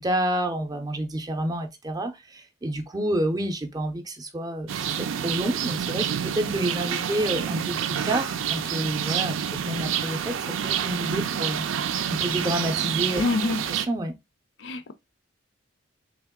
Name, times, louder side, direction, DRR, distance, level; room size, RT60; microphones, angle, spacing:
voice 1, 0.0-11.7 12.1-13.2 13.7-14.1, right 1 dB, 20° right, 0.5 m, -29 dB
sound 1, 4.7-13.9, right 8 dB, 80° right, 0.4 m, -28 dB
voice 2, 13.2-13.6 14.6-14.9, left 3 dB, 65° left, 0.5 m, -25 dB
3.5 x 2.9 x 3.6 m
head